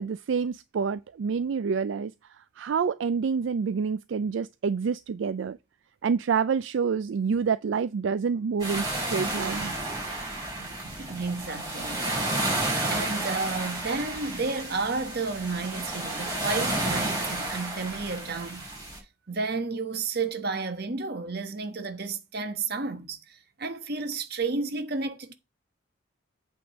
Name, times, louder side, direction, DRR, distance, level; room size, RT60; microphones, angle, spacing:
voice 1, 0.0-5.6 6.0-9.7, right 6 dB, 75° right, 0.4 m, -28 dB
sound 1, 8.6-19.0, right 2 dB, 20° right, 5.3 m, -31 dB
voice 2, 10.6-18.7 19.3-25.3, right 4 dB, 55° right, 1.3 m, -32 dB
8.5 x 3.7 x 6.4 m
head